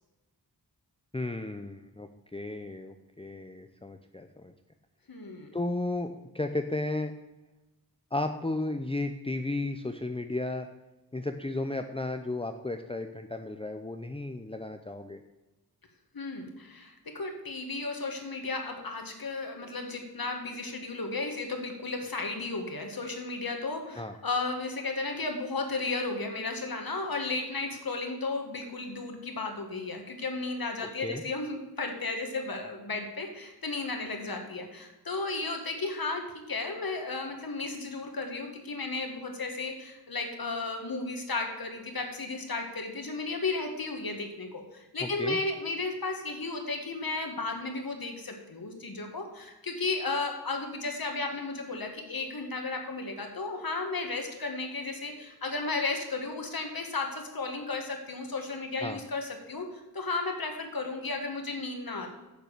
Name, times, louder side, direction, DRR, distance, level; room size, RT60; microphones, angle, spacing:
voice 1, 1.1-4.5 5.5-7.1 8.1-10.7 11.1-15.2 24.0-24.1 31.0-31.2 45.0-45.4 58.8-59.0, left 2 dB, 15° left, 6 dB, 0.7 m, -34 dB
voice 2, 5.1-5.5 16.1-62.1, left 3 dB, 60° left, 3 dB, 2.1 m, -34 dB
10.5 x 6.7 x 6.7 m, 1.1 s
wide cardioid pair, 60°, 39 cm